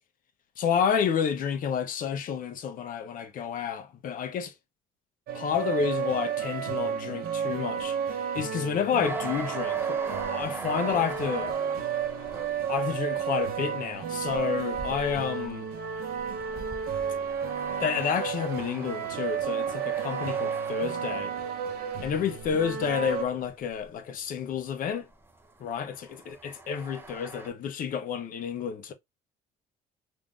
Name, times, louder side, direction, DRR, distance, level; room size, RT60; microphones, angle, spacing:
voice 1, 0.6-4.5 5.3-10.0 10.3-11.5 12.7-15.7 17.8-21.3 22.0-25.1 25.6-25.9 26.3-28.9, left 7 dB, 55° left, 0.7 m, -30 dB
sound 1, 5.3-23.2, right 7 dB, 60° right, 0.7 m, -32 dB
sound 2, 9.0-24.6 24.9-27.5, right 3 dB, 15° right, 0.6 m, -42 dB
3.3 x 2.6 x 2.3 m
cardioid pair, 110°, 17 cm